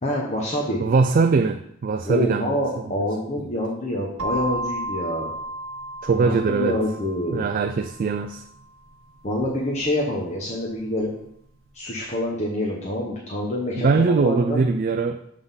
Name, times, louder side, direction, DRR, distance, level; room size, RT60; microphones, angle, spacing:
voice 1, 0.0-0.8 2.0-5.3 6.1-7.4 9.2-11.1 11.7-14.6, left 1 dB, 35° left, -2 dB, 1.0 m, -26 dB
voice 2, 0.8-2.6 2.9-3.1 3.4-3.5 6.0-6.8 7.3-8.4 13.8-15.2, right 4 dB, 45° right, 7 dB, 0.3 m, -21 dB
sound 1, 4.2-12.0, right 1 dB, 80° right, 0.7 m, -35 dB
7.9 x 3.6 x 5.5 m, 0.75 s
head